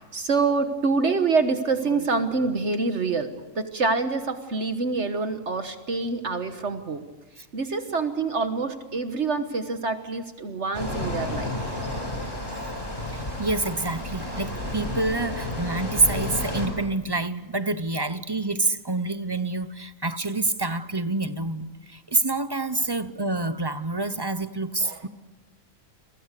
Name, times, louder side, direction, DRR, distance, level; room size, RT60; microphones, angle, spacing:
voice 1, 0.1-7.0 7.5-11.5 24.8-25.1, right 4 dB, 65° right, 8 dB, 1.6 m, -26 dB
sound 1, 10.7-16.7, left 1 dB, 40° left, 6.4 m, -31 dB
voice 2, 13.1-25.1, right 2 dB, 20° right, 12 dB, 0.8 m, -27 dB
29.5 x 23.5 x 6.7 m, 1.2 s
omnidirectional pair, 1.3 m